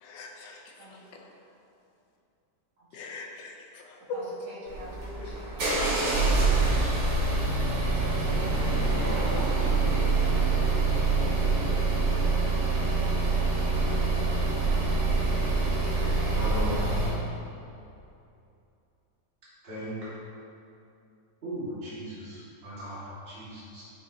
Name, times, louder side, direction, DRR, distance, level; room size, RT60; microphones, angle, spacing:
voice 1, 0.0-1.2 2.9-4.2 5.2-5.3, left 4 dB, 90° left, 1 dB, 1.4 m, -42 dB
voice 2, 0.8-1.3 2.8-2.9 4.1-7.4 7.7-9.8, right 1 dB, 60° right, -7 dB, 2.1 m, -46 dB
sound 1, 4.7-17.2, right 3 dB, 80° right, 2.0 m, -25 dB
voice 3, 16.3-16.9 19.6-20.1 21.4-23.8, right 1 dB, 35° right, -10 dB, 2.0 m, -37 dB
10.5 x 5.3 x 2.8 m, 2.6 s
omnidirectional pair, 1.9 m